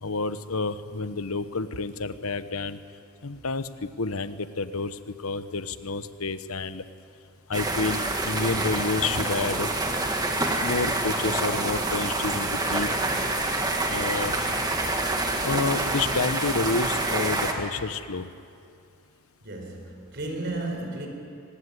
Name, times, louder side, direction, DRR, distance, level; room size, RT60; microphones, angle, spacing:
voice 1, 0.0-2.8 3.2-6.9 7.5-9.7 10.6-12.9 13.8-14.5 15.4-18.3, left 3 dB, 80° left, 12 dB, 1.0 m, -29 dB
sound 1, 7.5-17.5, right 2 dB, 20° right, 1.9 m, -27 dB
voice 2, 19.4-21.1, right 2 dB, 50° right, 3 dB, 4.4 m, -33 dB
24.0 x 19.5 x 9.7 m, 2.5 s
head